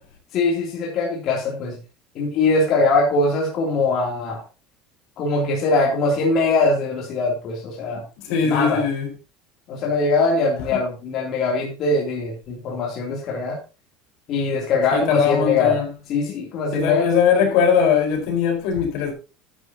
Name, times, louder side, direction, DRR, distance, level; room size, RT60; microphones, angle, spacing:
voice 1, 0.3-1.8 2.1-4.4 5.2-8.0 8.4-8.8 9.7-13.6 14.3-15.8 16.1-17.1, left 3 dB, 45° left, 3.0 m, -22 dB
voice 2, 7.9-9.1 14.9-15.9 16.7-19.1, left 7 dB, 70° left, 4.6 m, -20 dB
12.5 x 9.7 x 2.9 m
cardioid pair, 150°, 0 cm